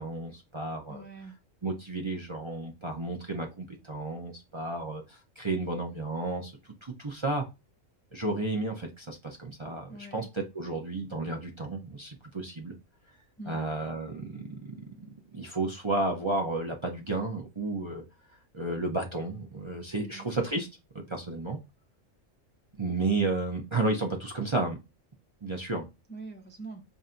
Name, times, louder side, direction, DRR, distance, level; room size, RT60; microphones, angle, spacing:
voice 1, 0.0-1.0 1.6-6.5 6.8-7.4 8.1-12.8 13.5-18.0 18.5-20.7 20.9-21.6 22.8-24.8 25.4-25.9, right 2 dB, 30° right, 0.5 m, -32 dB
voice 2, 0.9-1.4 9.9-10.3 13.4-13.6 20.0-20.3 26.1-26.8, right 2 dB, 15° left, 0.3 m, -43 dB
5.5 x 2.7 x 2.5 m
omnidirectional pair, 1.4 m